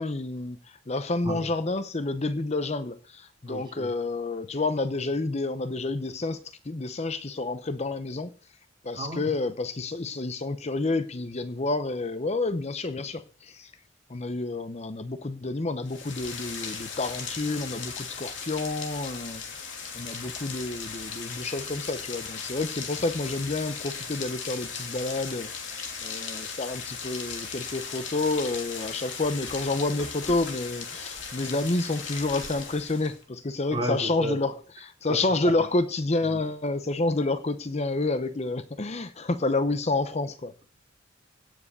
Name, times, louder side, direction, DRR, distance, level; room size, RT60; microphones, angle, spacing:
voice 1, 0.0-6.4 6.6-8.3 8.8-13.7 14.1-25.5 26.0-40.5, left 2 dB, 35° left, 0.8 m, -29 dB
voice 2, 3.5-3.9 8.9-9.3 33.7-34.4 35.1-35.2 35.4-35.7 36.3-36.4, right 1 dB, 25° right, 4.6 m, -32 dB
Rain, 15.8-33.2, left 5 dB, 70° left, 3.1 m, -37 dB
17.0 x 7.6 x 6.7 m
head